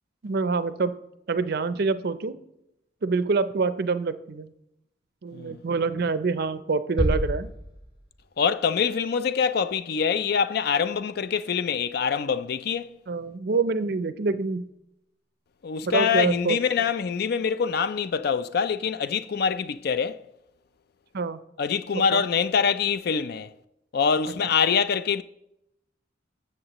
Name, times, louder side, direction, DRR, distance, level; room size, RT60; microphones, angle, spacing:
voice 1, 0.2-0.9 1.3-2.4 3.0-4.5 5.2-7.5 13.1-14.7 15.8-16.6 21.1-21.4 21.9-22.2, right 4 dB, 55° right, 0.5 m, -26 dB
sound 1, 7.0-8.4, equal, 25° left, 1.3 m, -28 dB
voice 2, 8.4-12.9 15.6-20.2 21.6-23.5 23.9-25.2, left 6 dB, 55° left, 0.4 m, -25 dB
12.5 x 7.4 x 3.0 m
head